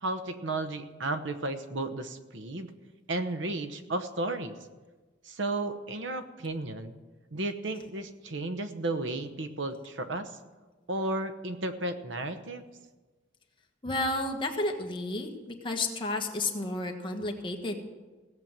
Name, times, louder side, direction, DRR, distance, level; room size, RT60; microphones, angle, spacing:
voice 1, 0.0-2.7 3.1-4.6 5.2-6.9 7.3-10.3 10.9-12.6, right 2 dB, 80° right, 9 dB, 1.0 m, -33 dB
voice 2, 13.8-15.3 15.6-17.8, left 2 dB, 25° left, 2 dB, 1.4 m, -31 dB
16.5 x 7.7 x 7.4 m, 1.3 s
head